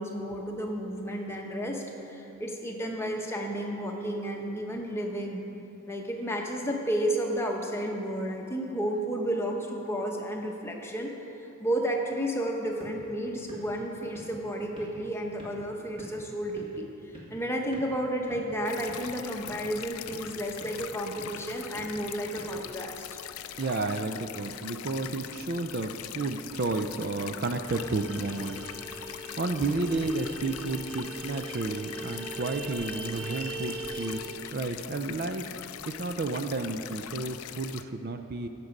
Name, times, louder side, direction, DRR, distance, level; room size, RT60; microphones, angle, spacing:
voice 1, 0.0-1.8 2.1-5.4 5.9-11.1 11.6-16.9 17.3-23.1 23.6-23.7, right 1 dB, 10° left, 1 dB, 0.9 m, -32 dB
sound 1, 12.5-23.3, equal, 25° right, 1.9 m, -50 dB
sound 2, 18.6-37.8, left 11 dB, 70° left, 0.4 m, -42 dB
voice 2, 23.6-35.5 35.9-38.5, right 3 dB, 45° right, 7 dB, 0.4 m, -32 dB
Vehicle horn car horn honking, 27.6-34.2, right 3 dB, 70° right, 1.3 m, -41 dB
16.0 x 6.0 x 5.2 m, 2.9 s
head